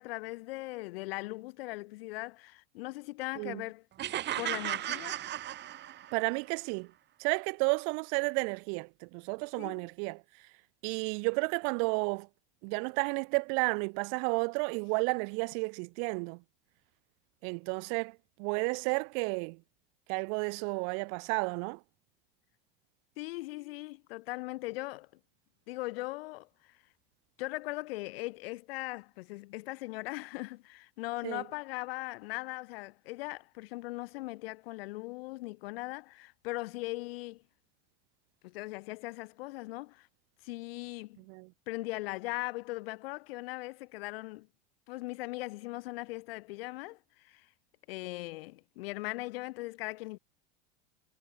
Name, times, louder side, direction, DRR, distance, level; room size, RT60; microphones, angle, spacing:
voice 1, 0.0-3.8 4.4-5.3 9.6-9.9 23.2-25.1 25.7-26.7 27.4-37.4 38.4-40.1 40.4-41.2 41.7-44.5 44.9-47.5 47.9-50.2, left 21 dB, 75° left, 2.8 m, -39 dB
sound 1, 4.0-6.3, right 13 dB, 35° right, 0.9 m, -35 dB
voice 2, 6.1-6.9 7.2-10.2 10.8-12.3 12.6-16.4 17.4-19.6 20.1-21.8 31.2-31.4 41.3-41.5, right 40 dB or more, 65° right, 1.1 m, -32 dB
supercardioid pair, 105°, 30 cm